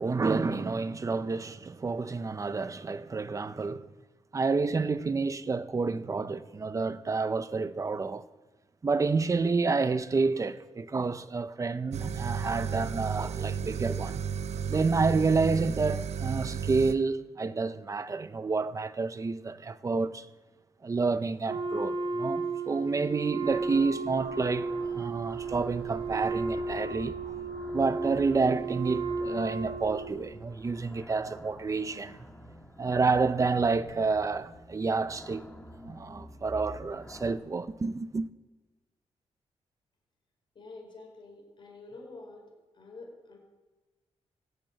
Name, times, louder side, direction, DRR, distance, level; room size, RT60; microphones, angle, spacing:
voice 1, 0.0-3.9 4.3-8.2 8.8-14.2 14.7-20.2 20.8-27.3 27.7-32.3 32.8-35.4 35.9-38.3, right 4 dB, 30° right, 0.7 m, -29 dB
sound 1, 11.9-16.9, right 7 dB, 80° right, 0.8 m, -33 dB
Wind instrument woodwind instrument, 21.5-30.3, right 4 dB, 60° right, 2.8 m, -34 dB
sound 2, 23.4-37.4, equal, 10° left, 1.8 m, -48 dB
voice 2, 40.5-43.4, left 3 dB, 45° left, 5.1 m, -48 dB
17.5 x 8.7 x 7.9 m
wide cardioid pair, 130°, 11 cm